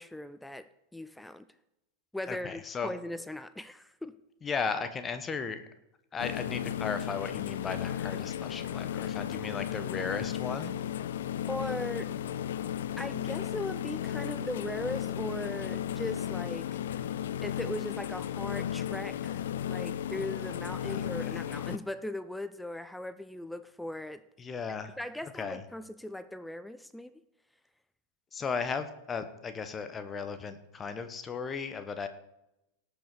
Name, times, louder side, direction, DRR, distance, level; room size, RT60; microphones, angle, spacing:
voice 1, 0.0-1.5 2.1-4.2 11.5-12.1 13.0-16.7 17.4-24.3 24.8-27.1, left 1 dB, 5° left, 14 dB, 0.5 m, -39 dB
voice 2, 2.3-2.9 4.4-5.6 6.1-10.8 20.9-21.4 24.4-24.9 25.4-25.6 28.3-32.1, left 5 dB, 20° left, 10 dB, 1.2 m, -36 dB
sound 1, 6.2-21.8, left 10 dB, 60° left, 0.5 m, -34 dB
18.0 x 6.8 x 4.9 m, 0.88 s
figure-of-eight pair, 90°, 0 cm